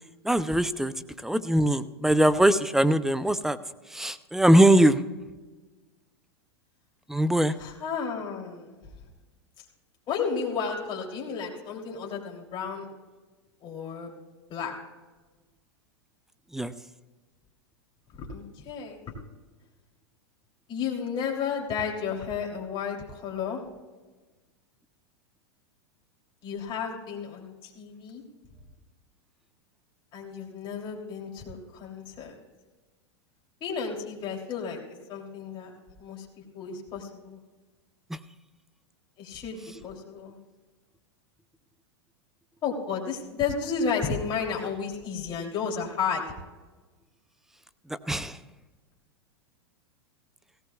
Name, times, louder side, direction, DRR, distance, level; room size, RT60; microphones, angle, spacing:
voice 1, 0.2-0.9 1.2-3.6 3.9-5.0 7.1-7.5 16.5-16.7 47.9-48.4, right 1 dB, 5° right, 14 dB, 0.5 m, -21 dB
voice 2, 7.6-8.7 10.1-12.9 13.6-14.1 14.5-14.7 18.2-19.0 20.7-23.6 26.4-28.2 30.1-32.3 33.6-34.8 35.1-35.7 36.0-36.2 36.5-37.4 39.2-40.3 42.6-46.2, left 6 dB, 35° left, -1 dB, 3.1 m, -32 dB
17.5 x 17.0 x 2.3 m, 1.3 s
hypercardioid pair, 120°, 14 cm